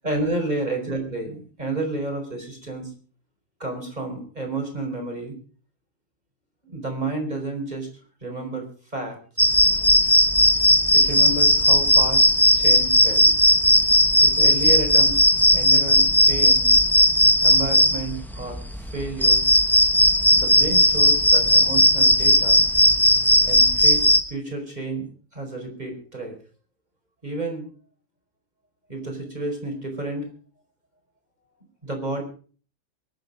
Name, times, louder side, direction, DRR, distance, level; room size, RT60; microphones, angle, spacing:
voice 1, 0.0-2.9 3.6-5.3 6.6-7.9 8.2-8.6 8.9-9.2 10.9-12.2 12.5-13.3 14.2-15.2 15.5-16.7 17.4-19.4 20.3-22.6 23.4-26.3 27.2-27.7 28.9-30.3 31.8-32.2, right 2 dB, 25° right, 3 dB, 4.8 m, -31 dB
sound 1, 9.4-24.2, equal, ahead, 1.1 m, -17 dB
23.5 x 9.1 x 4.9 m, 0.41 s
omnidirectional pair, 1.7 m